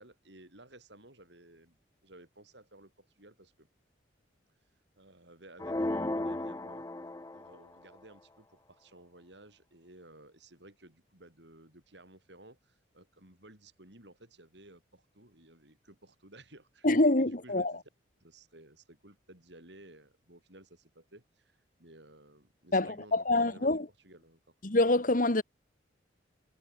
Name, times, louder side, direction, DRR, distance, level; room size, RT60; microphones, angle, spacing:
voice 1, 0.0-1.8 2.0-3.7 5.0-6.8 7.3-16.9 17.2-17.8 18.2-23.7 24.0-24.5, right 1 dB, 65° right, 7.9 m, -56 dB
sound 1, 5.6-7.7, left 1 dB, 20° left, 0.6 m, -34 dB
voice 2, 16.8-17.7 22.7-23.9 24.6-25.4, left 2 dB, 45° left, 1.6 m, -26 dB
head